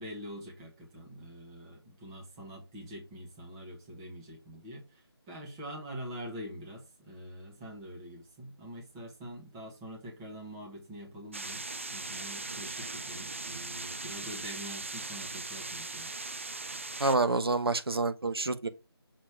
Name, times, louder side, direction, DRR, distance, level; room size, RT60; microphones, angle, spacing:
voice 1, 0.0-11.7 11.9-16.1, equal, 10° right, 1.1 m, -45 dB
sound 1, 11.3-17.2, right 3 dB, 30° right, 0.4 m, -39 dB
voice 2, 17.0-18.7, right 3 dB, 65° right, 1.0 m, -28 dB
6.3 x 4.1 x 4.6 m
figure-of-eight pair, 165°, 14 cm